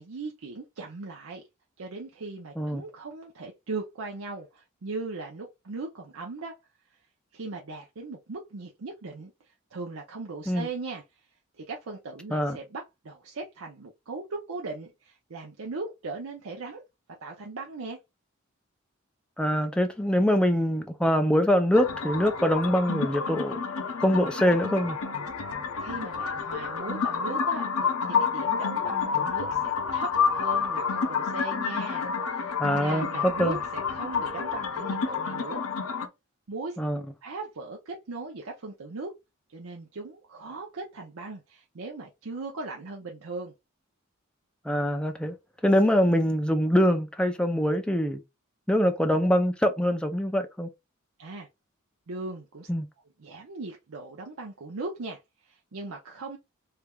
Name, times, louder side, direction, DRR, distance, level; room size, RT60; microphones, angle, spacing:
voice 1, 0.0-1.4 1.8-6.5 7.3-9.3 9.7-11.0 11.6-16.8 17.2-18.0 25.8-35.6 36.5-36.8 37.2-39.1 39.5-43.5 51.2-51.5 52.1-52.7 53.2-56.4, right 3 dB, 75° right, 0.6 m, -38 dB
voice 2, 19.4-23.5 24.0-25.0 32.6-33.6 36.8-37.0 44.7-45.3 45.6-48.2 48.7-50.7 52.7-52.9, equal, 5° left, 0.4 m, -24 dB
sound 1, 21.7-36.1, left 6 dB, 85° left, 0.7 m, -29 dB
3.3 x 3.2 x 2.3 m
head